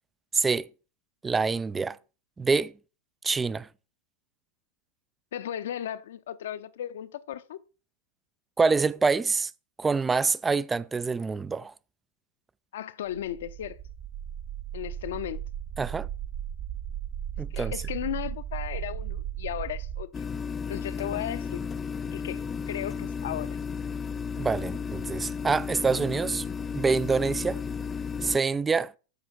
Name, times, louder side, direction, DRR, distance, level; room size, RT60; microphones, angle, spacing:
voice 1, 0.3-0.7 1.2-2.0 2.4-2.7 3.2-3.7 8.6-9.5 9.8-11.7 15.8-16.1 17.4-17.7 24.4-26.4 26.7-27.6 28.2-28.9, right 4 dB, 15° right, 0.4 m, -26 dB
voice 2, 5.3-7.6 12.7-13.8 14.7-15.4 17.5-20.3 20.7-21.6 22.1-23.6, left 11 dB, 60° left, 0.7 m, -35 dB
sound 1, 13.1-20.0, right 10 dB, 40° right, 1.2 m, -36 dB
sound 2, 20.1-28.4, left 6 dB, 20° left, 0.7 m, -34 dB
13.5 x 5.1 x 4.4 m
figure-of-eight pair, 90°, 0 cm